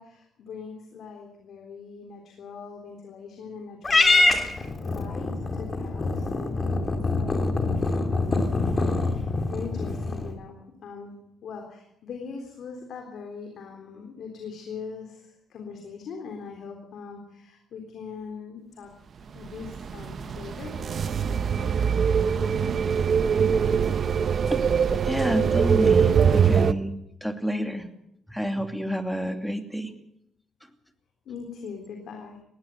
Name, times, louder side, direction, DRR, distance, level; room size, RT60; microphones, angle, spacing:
voice 1, 0.0-8.5 8.9-11.2 11.4-18.9 19.3-21.7 22.3-22.7 31.3-32.4, left 5 dB, 70° left, 3 dB, 3.7 m, -41 dB
Purr / Meow, 3.8-10.3, left 3 dB, 30° left, 3.2 m, -25 dB
sound 1, 19.4-26.7, right 7 dB, 50° right, 0.9 m, -23 dB
voice 2, 25.0-26.9 27.2-27.8 28.3-29.9, equal, ahead, 6 dB, 2.6 m, -29 dB
20.5 x 16.5 x 8.0 m, 0.78 s
cardioid pair, 90°, 0 cm